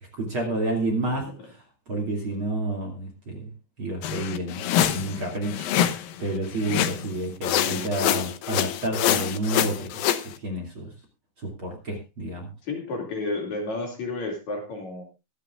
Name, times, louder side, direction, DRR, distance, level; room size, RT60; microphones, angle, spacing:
voice 1, 0.1-1.6 1.9-3.5 3.8-4.6 4.9-10.0 10.4-10.9 11.4-12.5, right 1 dB, 35° right, 1 dB, 3.0 m, -30 dB
sound 1, 4.0-6.1 6.6-7.1 7.4-10.3, left 11 dB, 70° left, 2.3 m, -25 dB
voice 2, 12.6-15.0, left 3 dB, 50° left, 2 dB, 3.4 m, -31 dB
24.0 x 9.6 x 2.5 m, 0.26 s
omnidirectional pair, 4.7 m